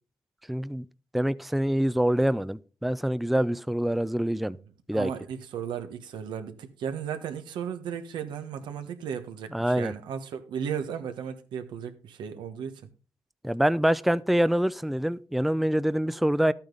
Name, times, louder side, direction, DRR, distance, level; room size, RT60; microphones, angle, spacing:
voice 1, 0.5-0.9 1.1-4.6 4.9-5.1 9.5-9.9 13.4-16.5, equal, ahead, 0.4 m, -25 dB
voice 2, 4.9-12.8, right 8 dB, 85° right, 1.3 m, -35 dB
12.0 x 8.8 x 3.9 m
cardioid pair, 75°, 8 cm